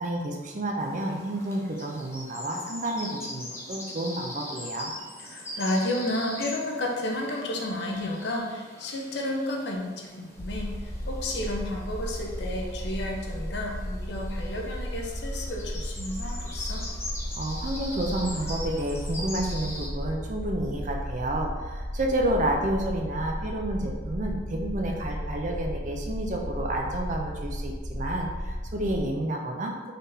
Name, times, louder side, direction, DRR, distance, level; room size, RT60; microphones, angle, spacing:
voice 1, 0.0-4.9 17.3-29.8, right 1 dB, 40° right, 1 dB, 0.4 m, -30 dB
sound 1, 0.8-19.9, left 1 dB, 15° left, 0.5 m, -42 dB
voice 2, 5.2-16.9, left 1 dB, 60° left, 0 dB, 0.6 m, -32 dB
sound 2, 10.3-29.0, equal, 80° right, 1.3 m, -35 dB
4.0 x 3.4 x 2.7 m, 1.4 s
head